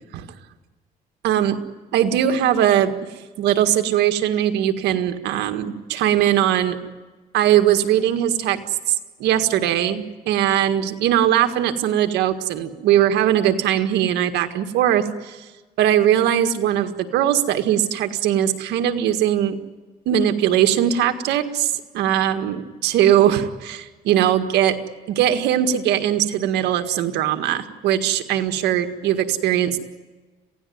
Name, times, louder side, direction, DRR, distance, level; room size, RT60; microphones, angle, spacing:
voice 1, 1.2-1.6 1.9-2.9 3.4-6.8 7.3-8.6 8.9-9.0 9.2-15.5 15.8-19.6 20.1-24.8 25.1-29.8, right 11 dB, 80° right, 7 dB, 1.8 m, -20 dB
28.0 x 16.5 x 9.4 m, 1.3 s
cardioid pair, 110°, 17 cm